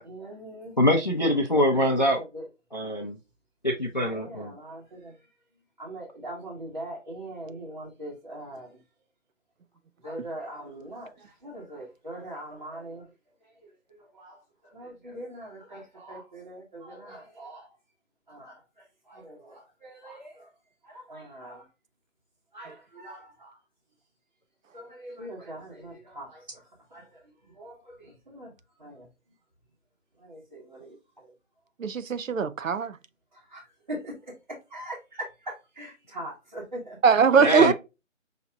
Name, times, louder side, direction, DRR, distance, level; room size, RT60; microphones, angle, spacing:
voice 1, 0.0-0.7 2.3-2.5 4.0-5.1 5.8-8.7 10.0-13.1 13.6-17.7 18.3-20.5 20.8-21.6 22.5-23.6 24.7-26.6 26.9-28.5 28.8-29.1 30.2-31.3 33.3-34.1 34.7-37.0, right 1 dB, 30° right, 1.3 m, -42 dB
voice 2, 0.8-2.2 2.7-3.2 3.6-4.5 37.4-37.7, left 1 dB, 35° left, 0.5 m, -24 dB
voice 3, 31.8-32.9 37.0-37.7, right 6 dB, 85° right, 0.7 m, -21 dB
5.7 x 2.9 x 2.3 m
hypercardioid pair, 175°, 38 cm